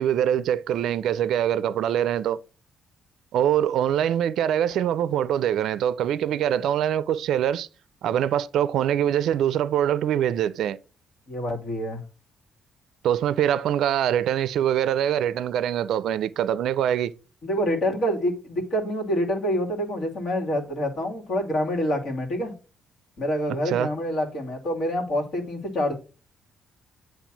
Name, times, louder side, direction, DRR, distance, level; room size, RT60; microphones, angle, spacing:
voice 1, 0.0-2.4 3.3-7.7 8.0-10.8 13.0-17.1 23.7-23.9, right 10 dB, 75° right, 0.4 m, -24 dB
voice 2, 11.3-12.0 17.4-22.5 23.2-25.9, equal, 65° left, 2.2 m, -26 dB
8.4 x 3.2 x 6.0 m
cardioid pair, 90°, 0 cm